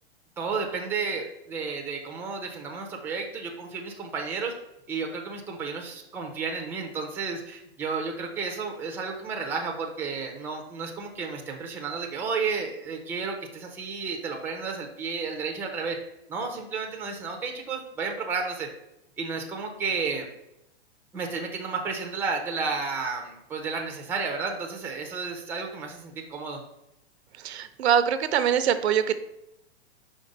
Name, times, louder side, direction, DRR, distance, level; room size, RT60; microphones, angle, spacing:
voice 1, 0.4-4.5 4.9-16.0 16.3-18.7 19.2-20.3 21.1-26.6, right 4 dB, 5° right, 2 dB, 0.5 m, -32 dB
voice 2, 27.4-29.2, right 9 dB, 75° right, 11 dB, 0.7 m, -23 dB
5.2 x 3.8 x 5.2 m, 0.87 s
hypercardioid pair, 145°, 33 cm